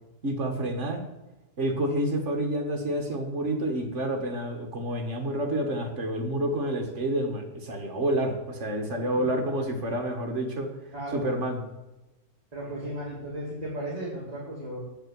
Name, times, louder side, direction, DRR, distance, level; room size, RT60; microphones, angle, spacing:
voice 1, 0.2-1.0 1.6-10.7 11.1-11.6, right 1 dB, 50° right, 4 dB, 2.0 m, -29 dB
voice 2, 10.9-11.3 12.5-14.8, right 1 dB, 25° right, -6 dB, 2.5 m, -35 dB
8.1 x 6.7 x 7.7 m, 1.0 s
omnidirectional pair, 1.7 m